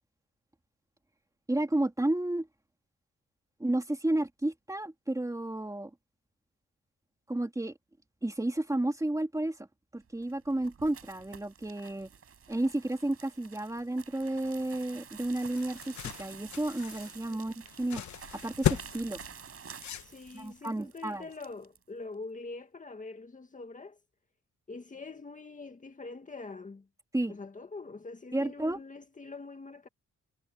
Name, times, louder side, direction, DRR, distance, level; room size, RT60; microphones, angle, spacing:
voice 1, 1.5-2.5 3.6-5.9 7.3-7.7 8.2-9.7 9.9-12.1 12.5-19.2 20.3-21.3 27.1-27.4 28.3-28.8, right 1 dB, 10° right, 2.7 m, -32 dB
sound 1, 10.1-21.8, right 7 dB, 50° right, 5.6 m, -50 dB
sound 2, 15.2-20.6, left 11 dB, 75° left, 1.2 m, -36 dB
voice 2, 20.0-24.0 24.7-26.9 27.3-29.9, left 3 dB, 25° left, 1.9 m, -44 dB
cardioid pair, 115°, 29 cm